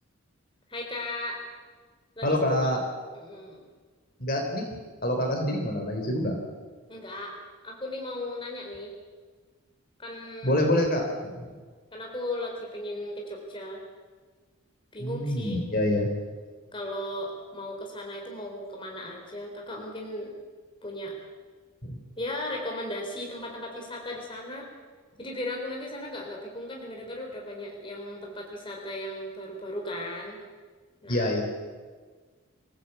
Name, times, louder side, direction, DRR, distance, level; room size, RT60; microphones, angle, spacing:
voice 1, 0.7-1.4 2.2-2.7 3.1-3.6 6.9-7.4 7.6-8.9 10.0-10.6 11.9-13.8 14.9-15.6 16.7-20.3 20.8-21.1 22.2-24.7 25.2-30.4 31.0-31.3, left 1 dB, 25° left, 0 dB, 3.9 m, -36 dB
voice 2, 2.2-2.8 4.2-6.3 10.4-11.5 15.0-16.1 21.9-22.0 31.1-31.4, left 1 dB, 40° left, 3 dB, 3.9 m, -26 dB
26.5 x 16.0 x 8.3 m, 1.5 s
head